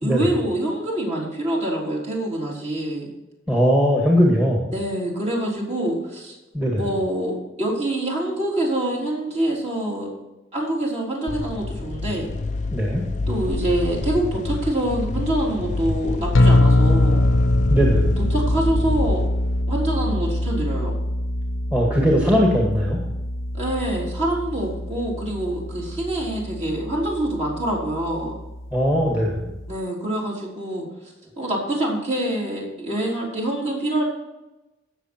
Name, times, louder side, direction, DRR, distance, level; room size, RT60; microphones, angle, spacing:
voice 1, 0.0-3.1 4.7-6.4 6.7-10.1 10.5-12.3 13.3-17.2 18.2-19.3 19.7-21.0 23.5-28.4 29.7-30.9 31.4-34.0, right 1 dB, 35° right, -3 dB, 3.8 m, -25 dB
voice 2, 3.5-4.7 6.5-6.8 12.7-13.0 17.7-18.1 21.7-23.0 28.7-29.5, equal, 10° right, -2 dB, 2.0 m, -19 dB
sound 1, 11.3-19.6, left 3 dB, 35° left, 0.5 m, -27 dB
sound 2, 16.3-29.8, left 1 dB, 75° left, 0.9 m, -23 dB
17.0 x 7.0 x 4.5 m, 1.0 s
head